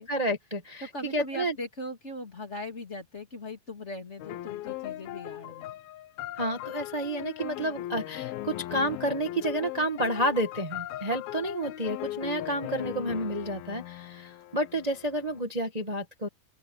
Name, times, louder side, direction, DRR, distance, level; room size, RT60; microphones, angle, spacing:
voice 1, 0.1-0.9 1.1-1.5 6.4-16.3, right 1 dB, 20° right, 0.9 m, -30 dB
voice 2, 0.8-5.7, left 1 dB, 20° left, 2.7 m, -39 dB
sound 1, 4.2-15.4, left 14 dB, 85° left, 2.8 m, -38 dB
open air
omnidirectional pair, 4.2 m